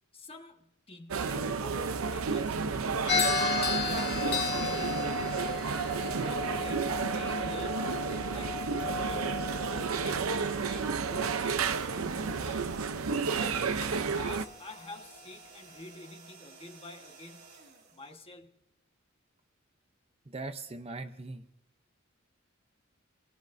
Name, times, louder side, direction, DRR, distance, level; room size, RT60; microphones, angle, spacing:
voice 1, 0.1-3.3 3.7-4.3 4.6-5.2 6.2-8.7 8.9-12.7 13.3-17.5 17.9-18.5, left 2 dB, 30° left, 4 dB, 1.4 m, -47 dB
sound 1, 1.1-14.5, right 5 dB, 85° right, 0.7 m, -31 dB
sound 2, 3.1-11.4, left 5 dB, 50° left, 1.1 m, -34 dB
sound 3, 8.7-18.7, right 4 dB, 55° right, 2.1 m, -54 dB
voice 2, 20.3-21.5, right 3 dB, 30° right, 7 dB, 0.7 m, -40 dB
26.0 x 19.0 x 2.7 m, 0.82 s
head